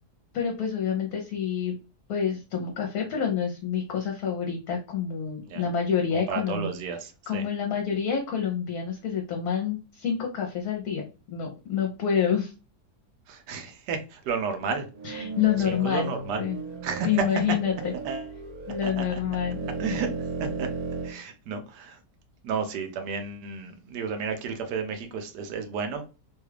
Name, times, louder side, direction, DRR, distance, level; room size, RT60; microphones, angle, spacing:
voice 1, 0.3-1.8 2.1-6.7 7.3-11.1 11.3-12.5 15.0-16.1 16.4-16.6 17.0-17.9 18.7-19.7, left 8 dB, 70° left, 1 dB, 1.2 m, -28 dB
voice 2, 6.1-7.4 13.3-14.9 15.7-16.4 16.8-17.1 18.0-18.3 18.8-19.2 19.8-20.1 20.4-20.7 21.0-22.0 22.4-26.0, right 5 dB, 85° right, 6 dB, 1.2 m, -32 dB
sound 1, 14.9-21.1, right 3 dB, 60° right, 1.6 m, -35 dB
3.2 x 2.3 x 3.2 m, 0.31 s
omnidirectional pair, 1.7 m